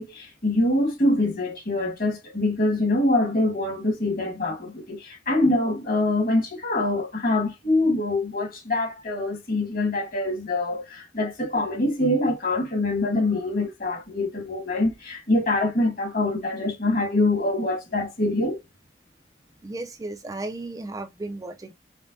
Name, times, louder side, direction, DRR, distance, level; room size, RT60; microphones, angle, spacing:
voice 1, 0.0-18.6, left 2 dB, 50° left, 1.4 m, -24 dB
voice 2, 19.6-21.7, right 2 dB, 20° right, 0.3 m, -34 dB
5.1 x 2.1 x 2.5 m
head